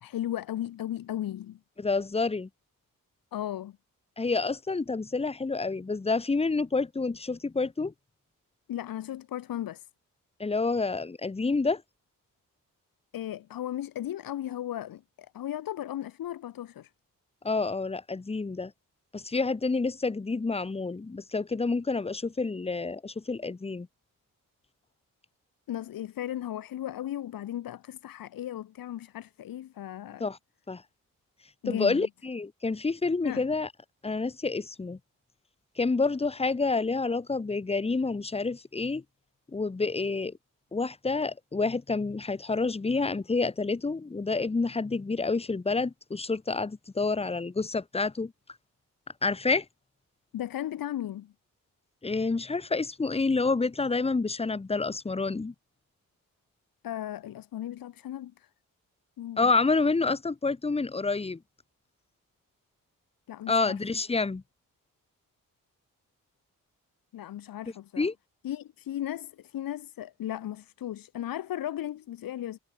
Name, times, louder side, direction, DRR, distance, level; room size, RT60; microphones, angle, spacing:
voice 1, 0.0-1.6 3.3-3.8 8.7-9.9 13.1-16.9 25.7-30.3 31.6-32.1 33.2-33.5 50.3-51.3 56.8-58.5 59.2-59.5 63.3-63.8 67.1-68.1 68.4-72.6, left 12 dB, 85° left, 1.3 m, -36 dB
voice 2, 1.8-2.5 4.2-7.9 10.4-11.8 17.4-18.7 19.1-23.9 30.2-30.4 30.7-30.8 31.7-33.7 34.0-35.0 35.8-39.0 39.5-40.3 40.7-48.3 49.2-49.6 52.0-55.5 59.4-61.4 63.5-64.4 68.0-68.1, left 3 dB, 20° left, 0.8 m, -28 dB
cardioid pair, 70°, 34 cm